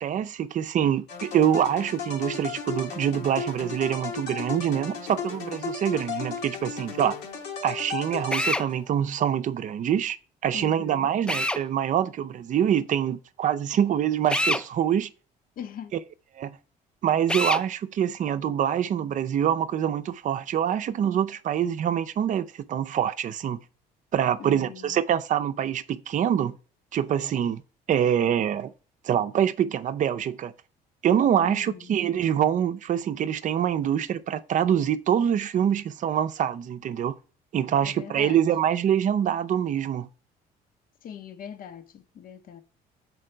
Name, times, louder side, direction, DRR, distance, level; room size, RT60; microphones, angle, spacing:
voice 1, 0.0-7.2 7.6-10.2 10.4-15.1 16.4-16.6 17.0-23.6 24.1-26.6 26.9-27.6 27.9-28.7 29.0-30.5 31.0-37.2 37.5-40.1, right 9 dB, 50° right, 0.5 m, -25 dB
sound 1, 1.1-8.8, left 5 dB, 80° left, 1.7 m, -35 dB
Drill, 8.3-8.7 11.3-11.6 14.3-14.6 17.3-17.6, left 1 dB, 5° left, 0.4 m, -25 dB
voice 2, 10.5-11.1 15.6-15.9 24.4-25.0 31.4-31.9 37.8-38.4 41.0-42.6, left 8 dB, 55° left, 0.9 m, -41 dB
6.5 x 4.6 x 4.5 m
cardioid pair, 110°, 17 cm